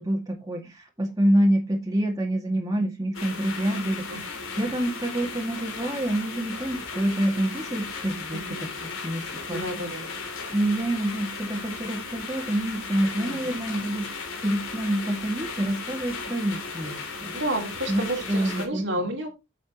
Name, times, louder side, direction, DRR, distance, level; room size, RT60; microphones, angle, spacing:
voice 1, 0.0-4.2 4.5-8.7 9.0-9.6 10.5-17.3 17.9-18.8, right 1 dB, 15° right, -1 dB, 2.1 m, -27 dB
sound 1, 3.1-18.7, left 4 dB, 75° left, 3.0 m, -36 dB
voice 2, 8.3-8.6 9.5-10.1 13.3-13.4 17.3-19.3, right 1 dB, 60° right, 2 dB, 2.4 m, -30 dB
9.0 x 7.3 x 3.0 m, 0.23 s
head